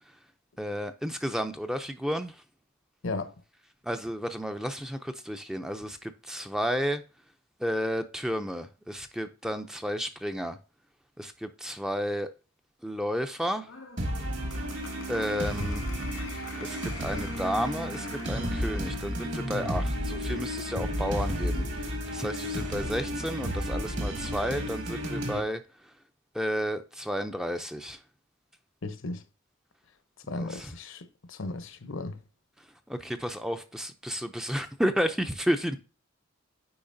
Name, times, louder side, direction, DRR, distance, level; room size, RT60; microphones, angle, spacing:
voice 1, 0.6-2.4 3.8-7.0 7.6-10.6 11.2-12.3 12.8-13.7 15.1-15.9 16.6-25.6 26.3-28.0 30.3-30.7 32.9-35.8, equal, ahead, 0.4 m, -32 dB
voice 2, 3.0-3.3 28.8-29.2 30.3-32.2, left 2 dB, 65° left, 0.8 m, -35 dB
Applause, 13.6-19.4, left 5 dB, 90° left, 1.7 m, -46 dB
sound 1, 14.0-25.4, equal, 65° right, 2.1 m, -32 dB
8.6 x 5.0 x 2.6 m
head